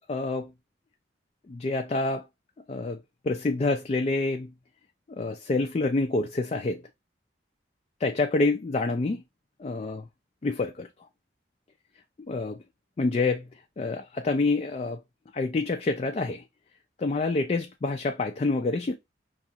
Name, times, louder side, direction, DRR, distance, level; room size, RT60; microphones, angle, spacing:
voice 1, 0.1-0.5 1.5-2.2 2.7-3.0 3.2-4.5 5.2-6.8 8.0-9.2 9.6-10.1 10.4-10.9 12.3-12.6 13.0-13.5 13.8-15.0 15.3-16.4 17.0-19.0, left 3 dB, 35° left, 0.3 m, -27 dB
5.9 x 2.4 x 2.7 m
head